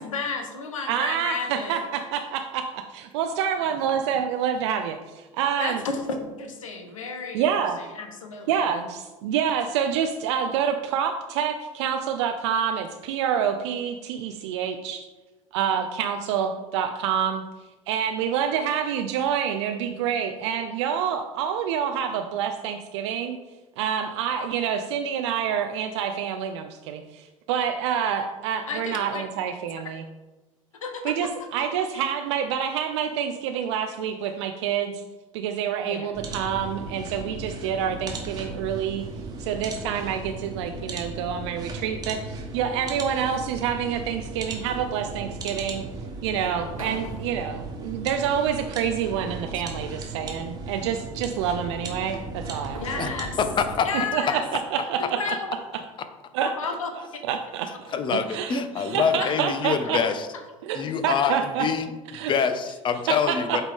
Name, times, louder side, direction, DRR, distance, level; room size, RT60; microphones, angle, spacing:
voice 1, 0.0-1.8 5.6-7.5 8.0-8.6 28.7-29.2 30.8-31.3 35.8-36.1 52.8-53.4 53.8-54.4 55.0-55.5 56.6-56.9 59.1-59.5, left 4 dB, 75° left, 5 dB, 0.8 m, -32 dB
voice 2, 0.9-5.8 7.3-7.9 8.5-15.1 15.5-17.4 17.9-23.4 23.8-30.0 31.0-35.0 35.3-39.0 39.4-45.8 46.2-53.1 54.1-55.2 56.3-56.7 57.3-57.7 58.1-60.0 60.6-61.7 62.1-62.3 63.1-63.6, right 8 dB, 55° right, 6 dB, 0.4 m, -27 dB
sound 1, 36.1-53.8, right 3 dB, 20° right, 1.3 m, -36 dB
sound 2, 46.4-48.3 48.6-49.3 50.4-50.7 51.8-55.1, right 2 dB, 85° right, 1.0 m, -45 dB
voice 3, 53.4-53.9 57.9-60.3 60.7-61.9 62.2-63.6, left 6 dB, 30° left, 9 dB, 0.6 m, -25 dB
8.0 x 3.7 x 3.6 m, 1.2 s
figure-of-eight pair, 70°, 17 cm